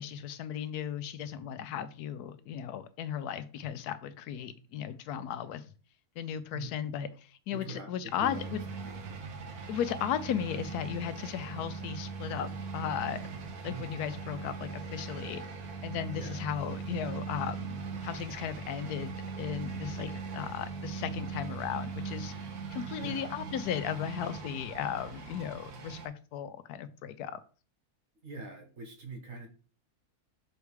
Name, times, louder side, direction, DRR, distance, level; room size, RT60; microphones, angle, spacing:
voice 1, 0.0-5.6 6.2-8.6 9.7-15.4 15.8-22.3 22.7-27.4, left 9 dB, 85° left, 1.1 m, -36 dB
voice 2, 7.5-9.0 13.6-14.0 16.1-16.5 23.0-23.4 28.2-29.5, right 2 dB, 60° right, 1.5 m, -44 dB
sound 1, 8.2-26.1, right 5 dB, 75° right, 1.4 m, -40 dB
sound 2, 19.1-26.0, left 2 dB, 35° left, 0.8 m, -55 dB
6.2 x 3.4 x 4.7 m
omnidirectional pair, 1.6 m